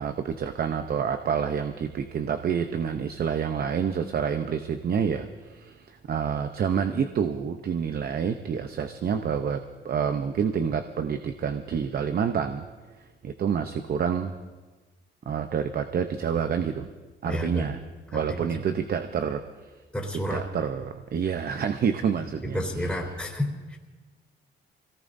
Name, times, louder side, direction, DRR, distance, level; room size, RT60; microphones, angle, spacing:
voice 1, 0.0-12.7 13.2-14.3 15.3-16.9 17.2-17.8 18.1-19.4 20.1-22.9, right 7 dB, 50° right, 8 dB, 0.7 m, -28 dB
voice 2, 17.2-17.7 18.1-18.5 19.9-20.4 22.4-23.8, equal, 5° left, -4 dB, 3.5 m, -30 dB
25.0 x 18.0 x 2.7 m, 1.3 s
cardioid pair, 90°, 20 cm